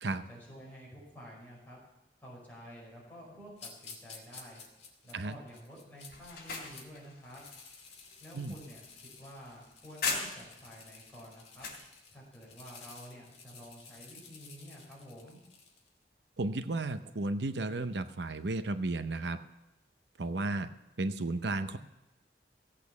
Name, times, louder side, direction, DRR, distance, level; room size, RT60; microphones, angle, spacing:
voice 1, 0.3-1.8 2.2-4.6 5.0-7.4 8.2-11.7 12.1-15.4, equal, 10° left, -6 dB, 5.5 m, -50 dB
sound 1, 3.6-6.8 7.2-15.9, left 5 dB, 35° left, 2.4 m, -53 dB
sound 2, 6.1-10.7 11.1-11.9, left 4 dB, 60° left, 3.3 m, -40 dB
voice 2, 16.4-19.4 20.2-20.7 21.0-21.8, right 2 dB, 80° right, 10 dB, 0.7 m, -33 dB
16.0 x 8.5 x 7.0 m, 0.97 s
head